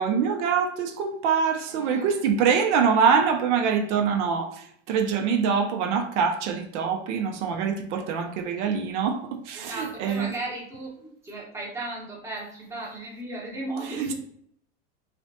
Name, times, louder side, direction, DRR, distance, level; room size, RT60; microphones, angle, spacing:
voice 1, 0.0-10.3 14.0-14.1, right 6 dB, 75° right, 0.5 m, -24 dB
voice 2, 1.7-2.2 9.5-14.1, right 2 dB, 5° right, 0.8 m, -36 dB
2.5 x 2.1 x 2.6 m
supercardioid pair, 115°, 36 cm